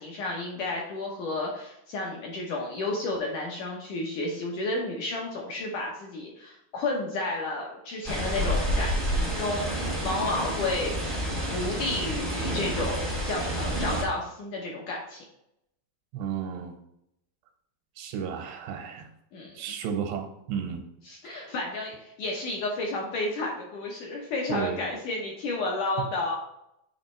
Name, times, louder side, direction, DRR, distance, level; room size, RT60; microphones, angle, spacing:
voice 1, 0.0-10.9 11.5-15.2 19.3-19.6 21.1-26.4, left 2 dB, 75° left, -2 dB, 1.9 m, -32 dB
sound 1, 8.0-14.0, equal, ahead, 0.3 m, -29 dB
voice 2, 16.1-16.8 18.0-19.1 19.6-20.8 21.2-21.5 24.5-24.8, right 7 dB, 80° right, 4 dB, 3.0 m, -33 dB
8.6 x 3.2 x 4.4 m, 0.80 s
omnidirectional pair, 4.9 m